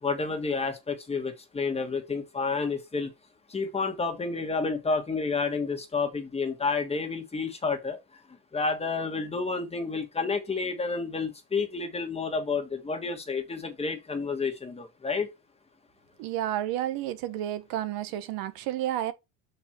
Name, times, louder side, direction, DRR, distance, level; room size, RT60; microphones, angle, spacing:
voice 1, 0.0-3.1 3.5-8.0 8.5-15.3, left 4 dB, 15° left, 1.6 m, -30 dB
voice 2, 16.2-19.1, right 12 dB, 70° right, 0.9 m, -31 dB
5.9 x 4.6 x 5.9 m
cardioid pair, 130°, 37 cm